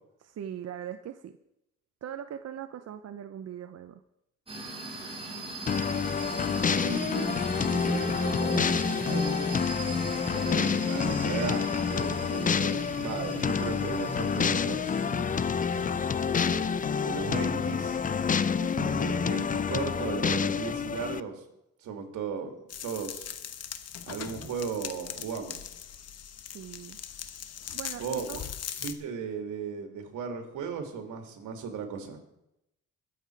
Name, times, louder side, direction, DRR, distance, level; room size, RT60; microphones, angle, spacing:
voice 1, 0.2-1.4 2.0-4.0 18.6-19.2 26.5-27.0 27.7-28.5, right 9 dB, 55° right, 9 dB, 0.8 m, -40 dB
sound 1, 4.5-20.8, equal, 20° right, 4.0 m, -37 dB
sound 2, 5.7-21.2, left 6 dB, 25° left, 0.5 m, -28 dB
voice 2, 6.7-9.5 10.3-15.0 16.3-16.7 17.0-18.0 19.0-21.4 21.8-22.5 22.8-23.4 24.1-25.7 28.0-28.5 28.8-32.2, right 5 dB, 80° right, 5 dB, 2.7 m, -36 dB
sound 3, 22.7-28.9, left 9 dB, 55° left, 1.2 m, -40 dB
21.5 x 7.7 x 4.7 m, 0.84 s
cardioid pair, 90°, 30 cm